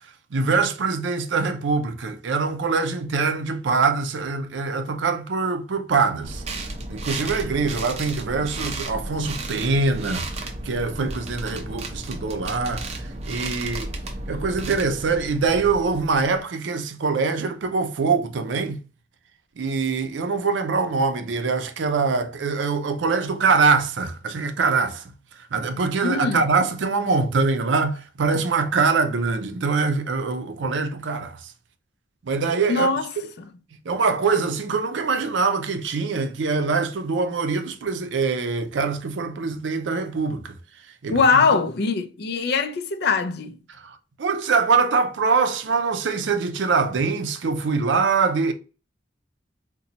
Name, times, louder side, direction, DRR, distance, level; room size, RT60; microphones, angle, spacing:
voice 1, 0.3-6.4 6.9-13.9 14.3-18.8 19.6-31.5 32.2-32.9 33.2-33.3 33.9-40.6 41.0-41.4 43.7-48.5, right 4 dB, 90° right, 0.5 m, -24 dB
sound 1, 6.2-16.4, right 2 dB, 35° right, 0.5 m, -33 dB
voice 2, 26.0-26.4 32.7-33.1 33.4-33.5 41.1-43.6, left 4 dB, 60° left, 0.4 m, -21 dB
4.0 x 2.2 x 2.7 m
head